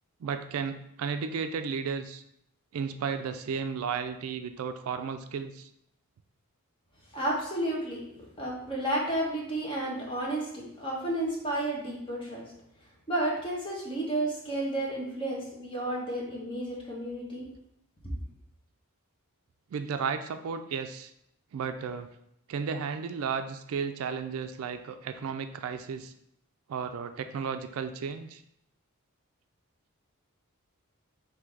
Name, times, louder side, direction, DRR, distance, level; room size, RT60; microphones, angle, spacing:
voice 1, 0.2-2.2 2.7-5.7 19.7-21.1 21.5-22.1 22.5-26.1 26.7-28.4, right 6 dB, 70° right, 9 dB, 0.3 m, -33 dB
voice 2, 7.1-8.1 8.4-12.5 13.1-17.5, right 1 dB, 25° left, -3 dB, 1.0 m, -32 dB
3.7 x 2.7 x 4.5 m, 0.75 s
head